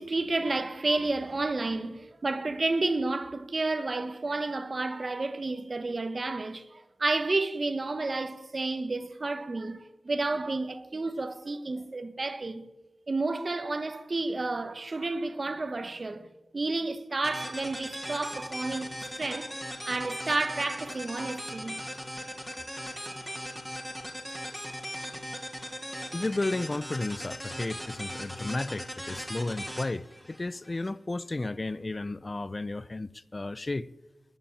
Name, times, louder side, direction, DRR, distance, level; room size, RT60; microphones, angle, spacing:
voice 1, 0.0-12.6 13.1-16.3 16.5-19.5 19.9-21.8, right 3 dB, 40° right, 1.2 m, -31 dB
sound 1, 17.2-30.9, equal, 5° left, 3.0 m, -39 dB
voice 2, 26.1-33.9, left 2 dB, 30° left, 0.5 m, -33 dB
21.0 x 7.0 x 8.8 m
wide cardioid pair, 90°, 0 cm